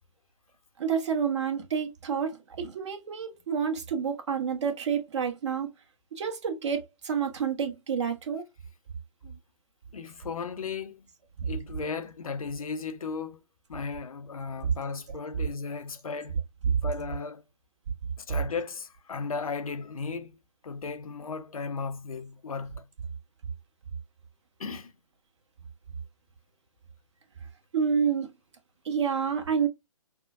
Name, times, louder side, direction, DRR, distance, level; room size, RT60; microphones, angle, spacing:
voice 1, 0.8-5.7 6.1-8.4 11.4-11.5 27.7-28.3 28.8-29.7, right 7 dB, 50° right, 1.3 m, -29 dB
voice 2, 9.9-11.1 11.4-13.4 13.7-16.4 16.8-17.4 18.2-20.4 20.6-22.9 24.6-24.9, left 5 dB, 70° left, 0.7 m, -36 dB
5.7 x 2.2 x 2.4 m
figure-of-eight pair, 140°, 19 cm